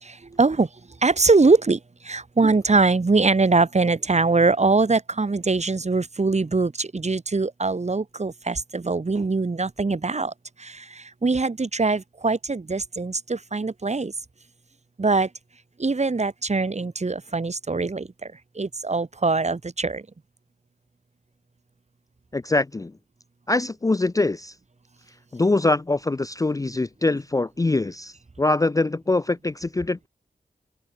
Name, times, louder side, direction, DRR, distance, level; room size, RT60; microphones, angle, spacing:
voice 1, 0.0-0.7 1.0-10.3 10.6-14.1 15.0-15.3 15.8-18.1 18.5-20.0, right 3 dB, 40° right, 1.3 m, -22 dB
voice 2, 22.3-22.9 23.5-24.5 25.3-30.1, left 2 dB, 20° left, 0.4 m, -23 dB
cardioid pair, 45°, 17 cm